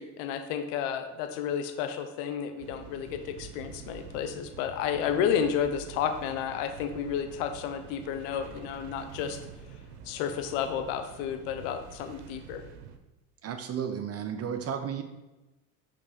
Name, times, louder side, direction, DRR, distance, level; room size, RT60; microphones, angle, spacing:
voice 1, 0.0-9.4 10.0-12.6, left 8 dB, 75° left, 8 dB, 0.7 m, -31 dB
sound 1, 2.6-13.0, right 7 dB, 80° right, 0.8 m, -47 dB
voice 2, 13.4-15.0, right 8 dB, 40° right, 7 dB, 0.6 m, -33 dB
6.6 x 3.2 x 5.2 m, 1.0 s
supercardioid pair, 95°, 38 cm